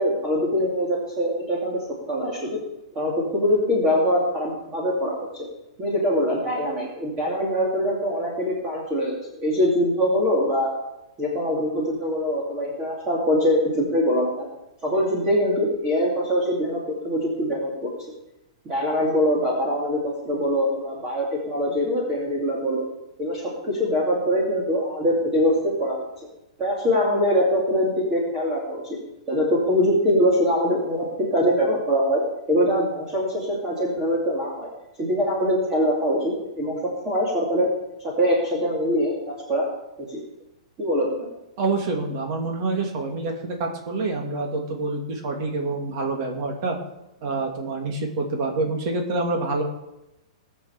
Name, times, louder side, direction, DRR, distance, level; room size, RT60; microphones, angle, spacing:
voice 1, 0.0-1.8 2.1-2.6 2.9-5.5 5.8-10.7 11.2-14.5 14.8-17.9 18.7-22.9 23.2-26.0 26.6-29.0 29.3-32.2 32.5-34.7 35.0-36.7 37.0-37.7 38.0-39.1 39.5-39.7 40.1-40.2 40.8-41.3, equal, 20° right, -4 dB, 2.6 m, -23 dB
voice 2, 41.6-46.8 47.2-49.6, right 3 dB, 35° right, 2 dB, 2.7 m, -27 dB
19.0 x 7.0 x 6.9 m, 0.91 s
hypercardioid pair, 170°, 3 cm